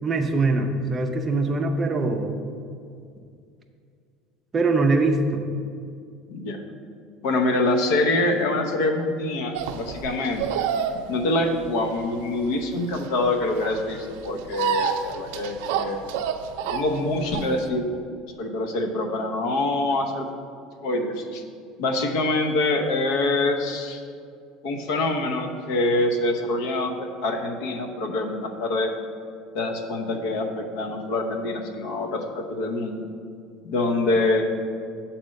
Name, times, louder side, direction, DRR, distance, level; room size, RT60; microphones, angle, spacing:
voice 1, 0.0-2.3 4.5-5.4, right 3 dB, 15° right, 3 dB, 0.5 m, -22 dB
voice 2, 6.3-6.6 7.2-10.4 11.1-16.0 16.7-17.9 18.4-20.3 20.8-21.4 21.8-24.0 24.6-28.9 29.5-33.0 33.6-34.4, left 2 dB, 60° left, 4 dB, 0.8 m, -25 dB
sound 1, 9.5-17.7, right 8 dB, 75° right, 0.4 m, -29 dB
6.7 x 4.3 x 6.3 m, 2.3 s
cardioid pair, 180°, 0 cm